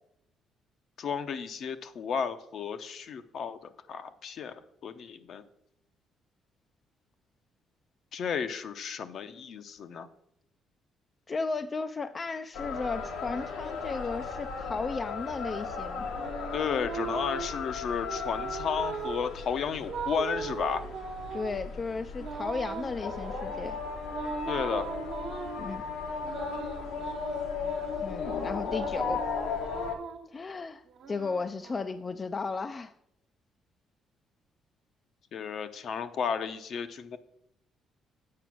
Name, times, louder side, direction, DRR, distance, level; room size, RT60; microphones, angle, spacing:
voice 1, 1.0-3.6 3.9-4.5 4.8-5.4 8.1-10.1 16.5-20.8 24.5-24.9 35.3-37.2, left 6 dB, 60° left, 10 dB, 0.7 m, -33 dB
voice 2, 11.3-16.1 21.3-23.8 25.6-25.8 28.0-29.2 30.3-30.8 31.1-32.9, left 4 dB, 30° left, 9 dB, 0.3 m, -34 dB
sound 1, 12.5-30.0, left 5 dB, 85° left, 1.2 m, -36 dB
sound 2, 15.3-17.6 18.0-19.3 19.9-21.6 22.2-23.5 24.1-25.7 26.2-28.1 28.6-30.3 30.9-32.2, right 6 dB, 65° right, 1.1 m, -39 dB
7.6 x 5.0 x 6.2 m, 0.77 s
cardioid pair, 105°, 0 cm